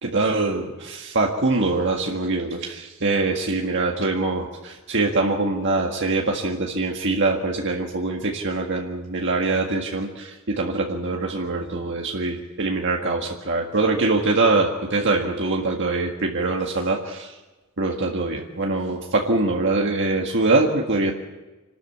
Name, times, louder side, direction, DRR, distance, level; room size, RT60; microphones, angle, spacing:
voice 1, 0.0-17.3 17.8-21.1, right 3 dB, 60° right, 0 dB, 1.8 m, -23 dB
27.0 x 13.0 x 8.6 m, 1.2 s
head